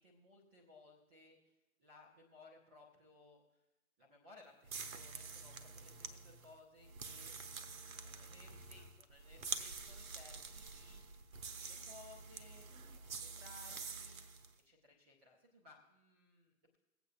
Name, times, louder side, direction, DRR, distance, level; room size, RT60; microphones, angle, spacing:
voice 1, 0.0-3.4 4.0-11.0 11.3-16.8, left 2 dB, 10° right, -2 dB, 0.5 m, -62 dB
sound 1, 4.6-14.5, right 5 dB, 70° right, 0.9 m, -47 dB
22.5 x 8.1 x 2.4 m, 0.98 s
figure-of-eight pair, 120°, 43 cm